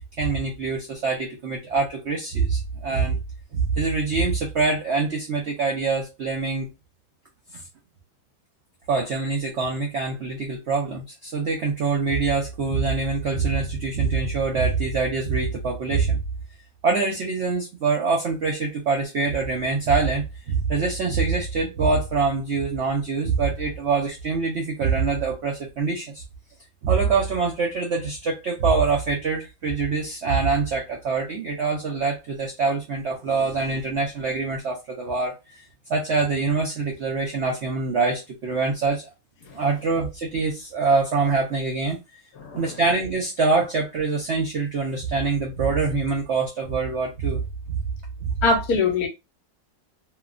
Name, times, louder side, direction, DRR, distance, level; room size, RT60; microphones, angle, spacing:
voice 1, 0.2-3.2 3.5-6.7 7.5-7.6 8.9-16.2 16.8-26.2 26.8-35.3 35.9-39.1 39.5-42.0 42.5-47.4 47.7-47.8 48.2-48.4, right 4 dB, 85° right, 0.6 m, -24 dB
voice 2, 42.4-42.8 48.4-49.1, left 3 dB, 70° left, 1.0 m, -23 dB
2.9 x 2.2 x 2.4 m
omnidirectional pair, 1.9 m